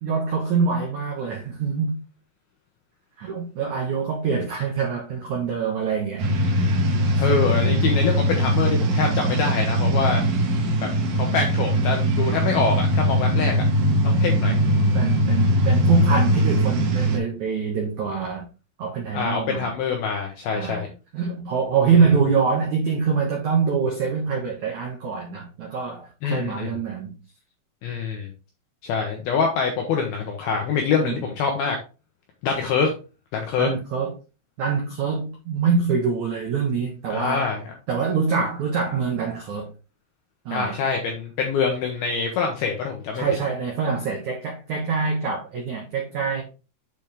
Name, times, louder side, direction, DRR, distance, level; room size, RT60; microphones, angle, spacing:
voice 1, 0.0-2.0 3.2-6.2 7.1-7.2 14.9-18.5 18.8-19.7 20.5-20.8 21.1-27.1 31.0-31.2 33.6-34.1 34.6-37.5 37.9-39.7 40.4-40.8 43.1-46.4, right 5 dB, 90° right, 1.6 m, -25 dB
sound 1, 6.2-17.2, equal, 65° right, 2.5 m, -21 dB
voice 2, 7.2-10.2 10.8-10.9 11.1-13.6 14.0-14.6 19.1-20.9 22.0-22.1 26.2-26.7 27.8-28.3 28.8-31.8 32.4-32.9 33.3-33.7 37.1-37.7 40.5-43.2, left 5 dB, 75° left, 2.3 m, -25 dB
8.2 x 4.5 x 3.5 m
omnidirectional pair, 5.7 m